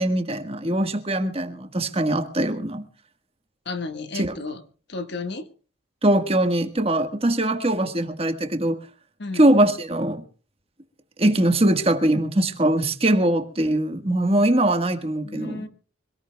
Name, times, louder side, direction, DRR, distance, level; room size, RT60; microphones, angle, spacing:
voice 1, 0.0-2.8 4.1-4.3 6.0-8.8 9.3-10.2 11.2-15.7, right 1 dB, 30° right, 7 dB, 1.5 m, -22 dB
voice 2, 3.6-4.6 4.9-5.5 9.2-9.5 15.2-15.7, left 3 dB, 55° left, 7 dB, 1.6 m, -32 dB
25.5 x 18.5 x 2.3 m, 0.38 s
head